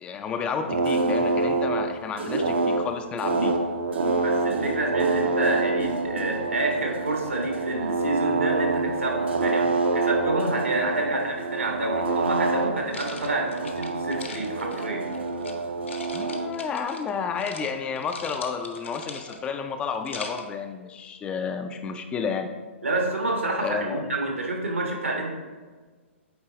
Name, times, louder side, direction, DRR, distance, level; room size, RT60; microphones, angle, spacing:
voice 1, 0.0-3.5 16.1-22.5 23.6-24.1, left 6 dB, 15° left, 6 dB, 0.3 m, -31 dB
sound 1, 0.7-16.5, right 3 dB, 60° right, 0.7 m, -26 dB
voice 2, 4.1-15.0 22.8-25.3, right 2 dB, 75° right, 0 dB, 1.5 m, -28 dB
sound 2, 12.9-15.5 15.9-17.1 17.4-17.7 18.0-19.5 19.9-20.5, left 3 dB, 65° left, 0.8 m, -39 dB
8.5 x 4.0 x 3.0 m, 1.4 s
figure-of-eight pair, 120°, 7 cm